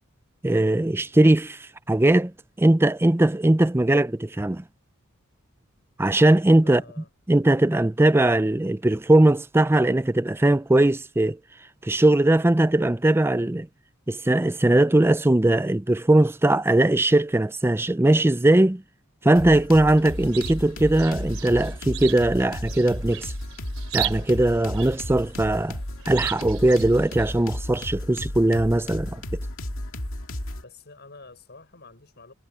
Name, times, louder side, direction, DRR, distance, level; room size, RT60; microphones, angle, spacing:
voice 1, 0.4-2.3 2.6-4.6 6.0-6.8 7.3-11.4 11.8-13.7 14.1-18.8 19.2-23.3 23.9-25.8 26.1-29.4, right 1 dB, 10° right, 0.5 m, -20 dB
voice 2, 6.6-7.1 30.6-32.3, left 3 dB, 50° left, 7.1 m, -47 dB
sound 1, 19.4-30.6, left 1 dB, 70° left, 2.5 m, -33 dB
Chirp tweet, 20.0-27.6, right 14 dB, 70° right, 4.1 m, -37 dB
head